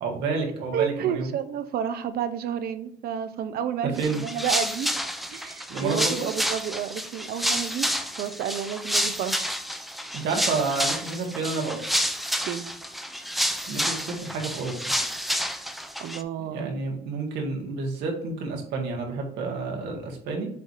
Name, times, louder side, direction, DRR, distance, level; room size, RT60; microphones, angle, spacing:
voice 1, 0.0-1.3 4.0-4.2 5.7-6.3 10.1-11.8 13.7-14.9 16.5-20.5, right 4 dB, 85° right, 1 dB, 1.9 m, -29 dB
voice 2, 0.7-4.9 5.3-7.9 8.1-9.5 12.5-12.7 16.0-16.7, right 9 dB, 65° right, 11 dB, 0.7 m, -30 dB
sound 1, 4.0-16.2, equal, ahead, 0.5 m, -29 dB
7.6 x 2.8 x 4.8 m, 0.70 s
cardioid pair, 110°, 17 cm